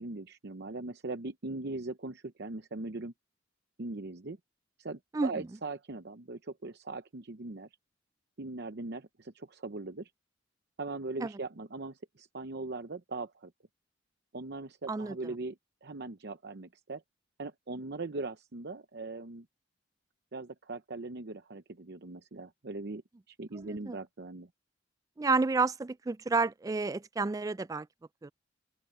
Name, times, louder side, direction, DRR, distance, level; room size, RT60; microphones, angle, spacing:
voice 1, 0.0-3.1 3.8-4.4 4.8-7.7 8.4-10.1 10.8-13.5 14.3-17.0 17.4-19.5 20.3-23.0 23.3-24.5, right 3 dB, 60° right, 0.8 m, -40 dB
voice 2, 5.1-5.5 11.2-11.3 14.9-15.2 23.6-24.0 25.2-27.9 28.2-28.3, right 3 dB, 20° right, 0.3 m, -30 dB
open air
head